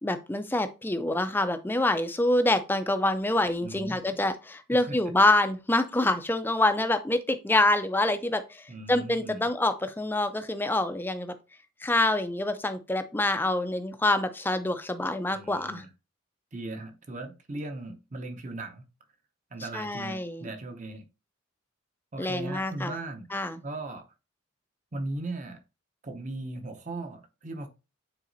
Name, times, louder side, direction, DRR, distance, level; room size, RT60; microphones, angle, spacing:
voice 1, 0.0-11.3 11.8-15.8 19.7-20.5 22.2-23.0 23.3-23.6, left 2 dB, 10° left, 0.4 m, -26 dB
voice 2, 3.6-4.2 4.9-5.0 8.7-9.5 15.3-15.9 16.5-18.8 19.5-21.1 22.1-23.4 23.6-24.0 24.9-25.6 26.0-27.7, right 2 dB, 35° right, 0.8 m, -38 dB
9.2 x 4.0 x 2.6 m
head